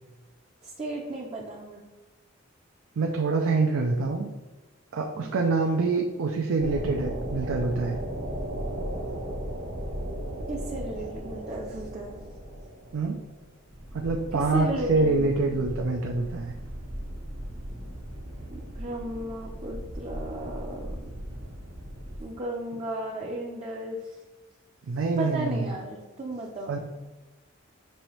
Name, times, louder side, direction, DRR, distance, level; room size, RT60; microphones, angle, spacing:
voice 1, 0.6-1.8 5.2-5.4 10.5-12.2 14.3-15.3 18.5-21.0 22.2-24.2 25.2-26.8, right 1 dB, 30° right, -2 dB, 0.5 m, -35 dB
voice 2, 3.0-4.3 4.9-8.0 12.9-13.2 13.9-16.5 24.9-25.7 26.7-26.8, right 3 dB, 85° right, 2 dB, 0.4 m, -26 dB
sound 1, 6.6-22.2, right 1 dB, 70° right, 1.0 m, -37 dB
5.5 x 3.2 x 3.0 m, 1.2 s
head